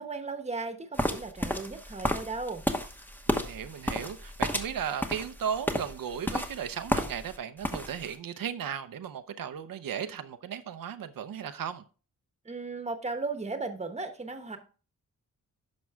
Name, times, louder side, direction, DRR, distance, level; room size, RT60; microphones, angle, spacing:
voice 1, 0.0-2.6 12.4-14.6, right 3 dB, 20° right, 1.1 m, -36 dB
sound 1, 1.0-7.4 7.6-8.1, left 1 dB, 5° left, 1.0 m, -32 dB
voice 2, 3.3-11.8, right 8 dB, 90° right, 0.8 m, -36 dB
10.5 x 6.2 x 3.5 m
wide cardioid pair, 135°, 33 cm